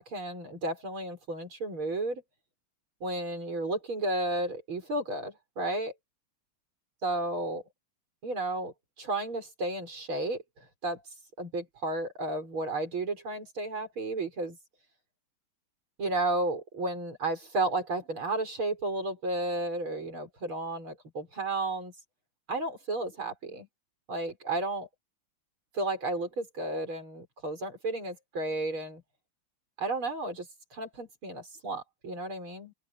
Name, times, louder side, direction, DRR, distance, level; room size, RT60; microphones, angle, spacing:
voice 1, 0.0-2.2 3.0-5.9 7.0-7.6 8.2-8.7 9.0-10.4 10.8-11.0 11.4-14.6 16.0-21.9 22.5-23.7 24.1-24.9 25.7-29.0 29.8-32.7, right 2 dB, 80° right, 7.3 m, -33 dB
open air
omnidirectional pair, 2.2 m